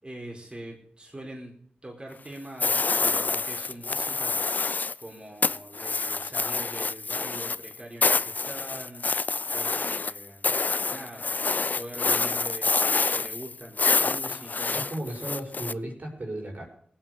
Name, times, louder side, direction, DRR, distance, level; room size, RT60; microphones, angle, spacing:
voice 1, 0.0-1.5 1.8-4.4 5.0-10.6 10.9-14.8, right 1 dB, 30° right, -1 dB, 4.8 m, -43 dB
sound 1, 2.6-5.0 5.4-15.7, left 4 dB, 50° left, 0.5 m, -27 dB
voice 2, 14.7-16.7, right 1 dB, 50° right, 2 dB, 5.7 m, -35 dB
18.0 x 9.2 x 6.8 m, 0.62 s
cardioid pair, 45°, 4 cm